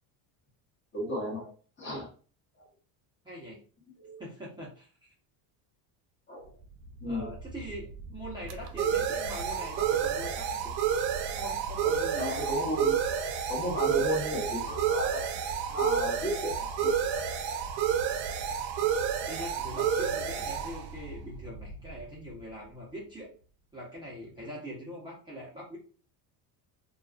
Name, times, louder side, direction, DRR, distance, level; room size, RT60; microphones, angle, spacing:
voice 1, 0.9-1.5 1.8-2.1 2.6-2.7 4.0-4.2 6.3-6.5 7.0-7.3 12.2-13.0 13.5-15.4 15.6-16.9, equal, 25° left, -2 dB, 0.9 m, -33 dB
voice 2, 3.2-3.6 4.2-5.1 7.1-10.8 11.4-12.5 19.3-23.3 23.7-25.8, equal, 10° right, -7 dB, 0.6 m, -42 dB
sound 1, 6.9-22.3, right 8 dB, 70° right, 0.6 m, -30 dB
2.4 x 2.3 x 2.3 m, 0.40 s
cardioid pair, 135°, 47 cm